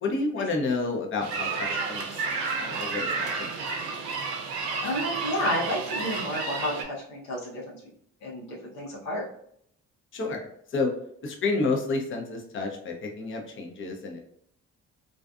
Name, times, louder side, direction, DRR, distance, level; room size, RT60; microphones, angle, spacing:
voice 1, 0.0-2.1 2.6-3.5 10.1-10.4 10.7-10.9 11.2-14.2, left 3 dB, 30° left, 2 dB, 0.7 m, -30 dB
sound 1, 1.2-6.8, right 4 dB, 65° right, 0.6 m, -31 dB
voice 2, 4.8-7.8 8.2-9.2, equal, 85° left, -4 dB, 0.8 m, -31 dB
2.4 x 2.4 x 2.3 m, 0.68 s
hypercardioid pair, 45°, 41 cm